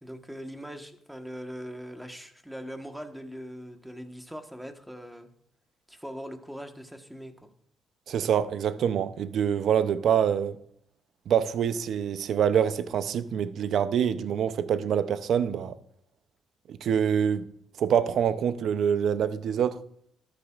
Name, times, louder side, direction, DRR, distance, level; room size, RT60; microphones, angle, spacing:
voice 1, 0.0-5.3 5.9-7.5, equal, 5° right, 1.3 m, -41 dB
voice 2, 8.1-10.6 11.3-15.7 16.7-17.5 17.8-19.8, right 8 dB, 70° right, 0.6 m, -25 dB
13.5 x 10.0 x 2.5 m
cardioid pair, 90°, 0 cm